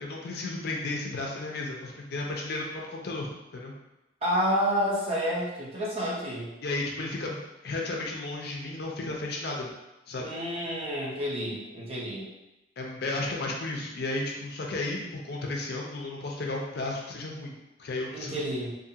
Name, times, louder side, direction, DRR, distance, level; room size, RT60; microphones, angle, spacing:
voice 1, 0.0-3.8 6.6-9.7 10.1-10.3 12.8-17.5 17.8-18.5, left 2 dB, 60° left, -1 dB, 0.5 m, -33 dB
voice 2, 4.2-6.5 10.2-12.3 18.1-18.7, equal, 35° right, -5 dB, 0.7 m, -29 dB
2.6 x 2.4 x 2.7 m, 0.97 s
head